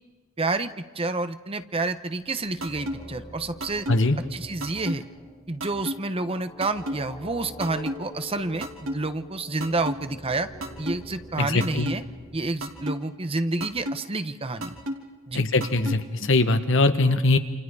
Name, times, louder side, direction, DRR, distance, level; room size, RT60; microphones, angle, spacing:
voice 1, 0.4-3.9 4.3-5.1 5.5-10.5 10.8-12.0 12.3-14.8 15.3-15.4, right 2 dB, 30° right, 10 dB, 1.0 m, -29 dB
sound 1, 2.0-13.3, equal, 25° left, 5.9 m, -46 dB
sound 2, 2.6-2.9 3.6-4.0 4.6-4.9 5.6-6.0 6.6-7.0 7.6-8.0 8.6-8.9 9.6-10.0 10.6-10.9 11.6-12.0 12.6-13.0 13.6-14.0 14.6-14.9 15.6-16.0, equal, 80° right, 3.2 m, -30 dB
voice 2, 11.4-11.9 15.3-17.4, left 2 dB, 65° left, 8 dB, 1.5 m, -21 dB
29.0 x 28.0 x 4.9 m, 1.3 s
head